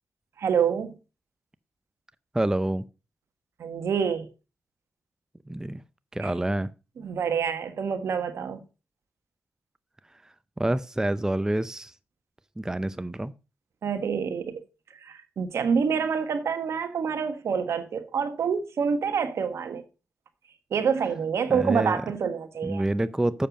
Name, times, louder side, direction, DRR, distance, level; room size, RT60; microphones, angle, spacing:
voice 1, 0.4-0.9 3.6-4.3 6.2-6.3 7.0-8.6 13.8-14.6 15.0-19.8 20.7-22.8, right 6 dB, 70° right, 1.4 m, -27 dB
voice 2, 2.3-2.8 5.5-5.8 6.1-6.7 10.6-11.9 12.6-13.3 21.5-22.0 22.6-23.5, right 1 dB, 10° right, 0.5 m, -27 dB
7.6 x 6.6 x 5.1 m
supercardioid pair, 50°, 5 cm